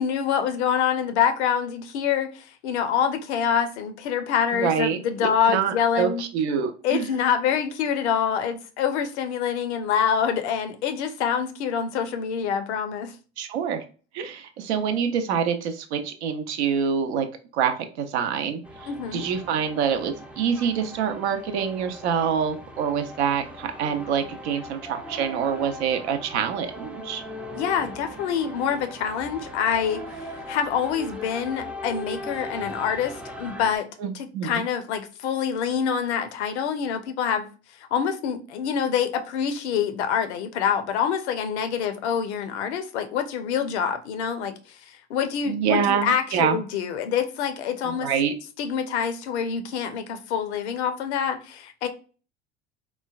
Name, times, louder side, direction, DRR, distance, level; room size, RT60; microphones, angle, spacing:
voice 1, 0.0-6.2 6.8-13.1 18.9-19.2 27.5-33.9 34.1-37.5 37.9-48.1 48.6-51.9, left 7 dB, 80° left, 0.5 m, -26 dB
voice 2, 4.5-7.1 13.4-13.8 14.1-17.3 17.5-27.2 34.0-34.6 45.5-46.6 47.8-48.3, right 7 dB, 75° right, 0.6 m, -26 dB
sound 1, 18.6-33.8, left 1 dB, 5° right, 0.3 m, -39 dB
3.1 x 2.1 x 2.3 m
hypercardioid pair, 70°, 34 cm